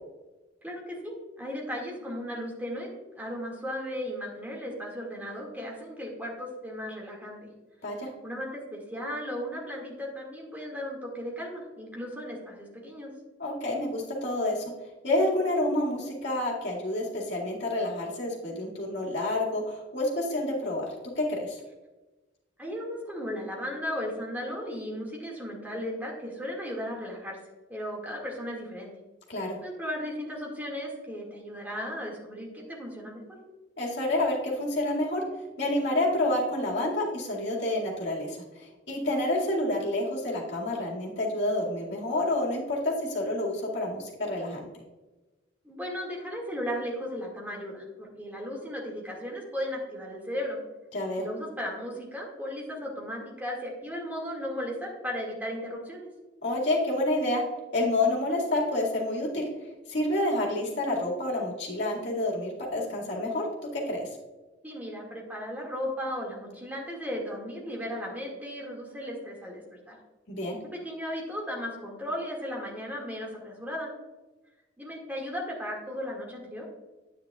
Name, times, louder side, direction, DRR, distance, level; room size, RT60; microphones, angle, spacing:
voice 1, 0.6-2.9 3.1-7.5 8.2-13.1 22.6-27.4 27.7-28.9 29.6-33.2 45.6-50.6 51.2-56.1 64.6-70.0 70.8-73.9 74.8-76.6, equal, 10° right, -2 dB, 2.1 m, -36 dB
voice 2, 13.4-14.6 15.0-20.8 21.2-21.6 29.3-29.6 33.8-35.2 35.6-44.6 50.9-51.3 56.4-57.4 57.7-59.5 59.9-63.5 63.7-64.1 70.3-70.6, left 1 dB, 60° left, -3 dB, 2.2 m, -28 dB
10.0 x 9.2 x 2.4 m, 1.1 s
head